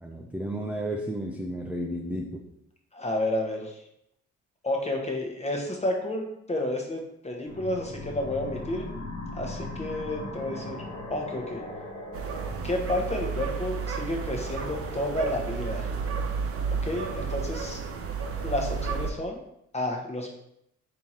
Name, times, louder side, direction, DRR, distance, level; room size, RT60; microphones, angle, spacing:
voice 1, 0.0-2.4, right 1 dB, 5° right, 1 dB, 0.4 m, -32 dB
voice 2, 2.9-3.8 4.6-8.9 9.3-10.8 11.1-11.6 12.6-15.9 16.7-17.8 18.4-19.4 19.7-20.3, left 1 dB, 20° left, 1 dB, 1.0 m, -31 dB
sound 1, 7.5-12.6, left 2 dB, 45° left, 1.6 m, -38 dB
sound 2, 12.1-19.1, right 5 dB, 50° right, 0.6 m, -32 dB
3.6 x 2.9 x 4.3 m, 0.78 s
cardioid pair, 90°, 30 cm